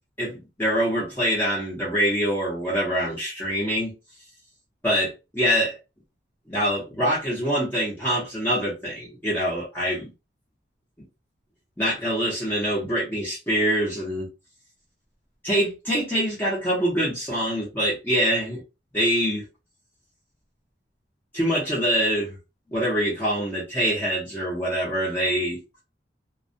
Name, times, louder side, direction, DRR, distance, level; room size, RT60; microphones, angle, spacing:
voice 1, 0.2-3.9 4.8-5.7 6.5-10.1 11.8-14.3 15.4-18.6 18.9-19.5 21.3-22.3 22.7-25.6, equal, 10° left, 0.8 m, -24 dB
2.3 x 2.2 x 2.6 m
head